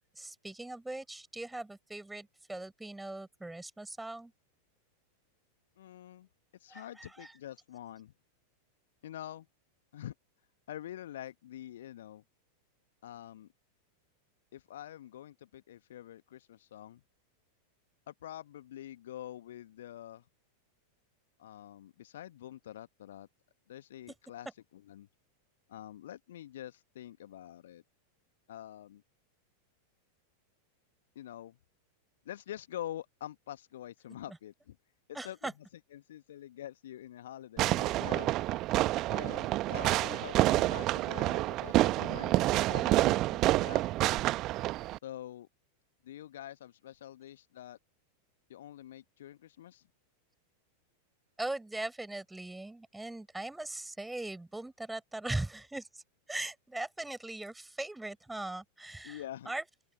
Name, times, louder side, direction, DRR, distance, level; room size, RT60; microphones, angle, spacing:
voice 1, 0.1-4.3 6.7-7.3 34.3-34.4 35.1-35.5 51.4-56.0 56.3-59.6, right 2 dB, 5° right, 6.6 m, -40 dB
voice 2, 5.8-6.3 6.6-8.1 9.0-9.5 9.9-10.1 10.7-12.2 13.0-13.5 14.5-17.0 18.1-20.2 21.4-23.3 23.7-24.5 24.7-25.1 25.7-27.8 28.5-29.0 31.1-31.6 32.2-34.8 35.1-35.5 35.9-38.6 39.1-44.2 45.0-45.5 46.0-47.8 48.5-49.8 59.0-59.5, left 12 dB, 60° left, 1.5 m, -46 dB
Fireworks, 37.6-45.0, right 17 dB, 35° right, 1.2 m, -28 dB
open air
figure-of-eight pair, 90°, 0 cm